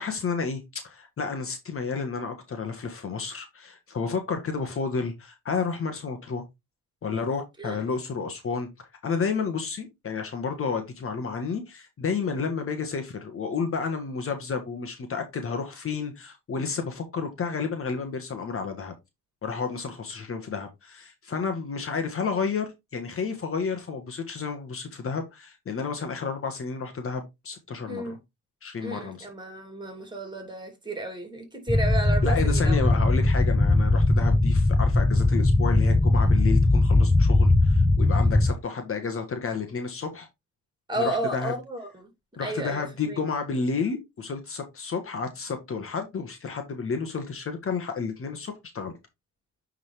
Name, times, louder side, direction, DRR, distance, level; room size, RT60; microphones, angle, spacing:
voice 1, 0.0-6.4 7.0-18.9 19.4-28.1 28.6-29.3 32.2-40.3 41.0-41.5 42.4-48.9, left 5 dB, 45° left, 1.5 m, -31 dB
voice 2, 28.8-32.8 40.9-42.1 42.4-43.2, right 1 dB, 15° right, 3.0 m, -32 dB
sound 1, 31.7-38.5, left 2 dB, 10° left, 0.7 m, -20 dB
8.9 x 3.9 x 3.4 m
cardioid pair, 90°, 30 cm